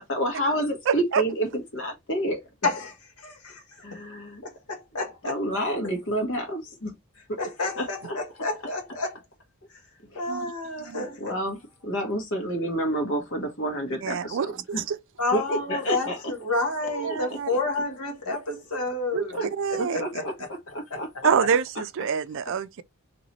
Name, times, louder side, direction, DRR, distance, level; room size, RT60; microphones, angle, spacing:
voice 1, 0.0-2.4 3.8-4.4 5.2-6.9 7.3-7.4 7.7-8.2 10.1-10.3 11.2-14.8 15.3-16.3 16.8-17.6 18.2-18.4 19.3-19.5 19.8-20.3 20.7-21.9, right 1 dB, 60° left, 1.4 m, -29 dB
voice 2, 0.9-1.2 10.3-10.5 10.8-11.1 14.0-15.0 17.0-17.5 19.1-19.2 19.6-20.0 21.2-22.8, right 6 dB, 60° right, 0.4 m, -26 dB
voice 3, 2.6-4.0 4.4-5.4 7.4-9.2 10.1-11.4 15.2-20.5 20.9-21.0 21.4-21.5, left 3 dB, 85° left, 1.3 m, -30 dB
3.0 x 3.0 x 4.1 m
head